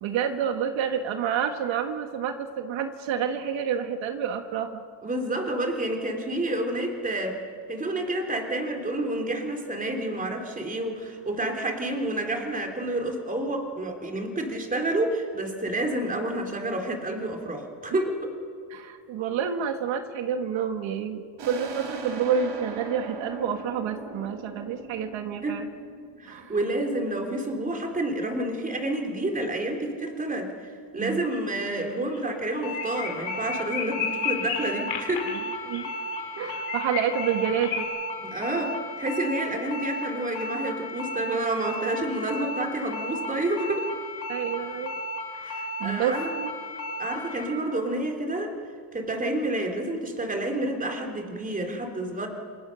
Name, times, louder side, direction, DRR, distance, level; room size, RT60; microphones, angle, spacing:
voice 1, 0.0-4.8 18.7-25.7 26.3-26.5 31.0-31.2 35.6-36.0 36.4-37.9 44.3-45.0 45.3-46.5, right 8 dB, 85° right, 6 dB, 1.9 m, -29 dB
voice 2, 5.0-7.4 7.7-18.3 25.4-25.6 26.2-35.4 38.2-43.9 45.4-46.3 47.0-48.5 48.9-52.3, right 1 dB, 20° right, 3 dB, 3.3 m, -29 dB
sound 1, 21.4-26.7, right 4 dB, 60° right, 4.7 m, -39 dB
sound 2, 31.0-31.4 31.6-31.7 32.1-32.2 32.5-37.8, left 8 dB, 80° left, 5.1 m, -33 dB
sound 3, 32.6-47.4, left 1 dB, 55° left, 4.3 m, -35 dB
27.0 x 26.5 x 6.4 m, 2.1 s
cardioid pair, 170°, 45 cm